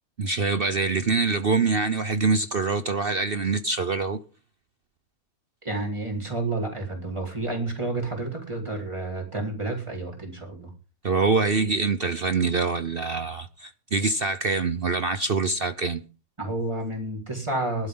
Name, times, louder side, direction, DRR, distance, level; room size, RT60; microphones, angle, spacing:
voice 1, 0.2-4.2 11.0-16.0, right 4 dB, 45° right, 0.8 m, -25 dB
voice 2, 5.6-10.7 16.4-17.9, right 2 dB, 15° right, 4.6 m, -30 dB
19.0 x 12.0 x 3.9 m
omnidirectional pair, 1.7 m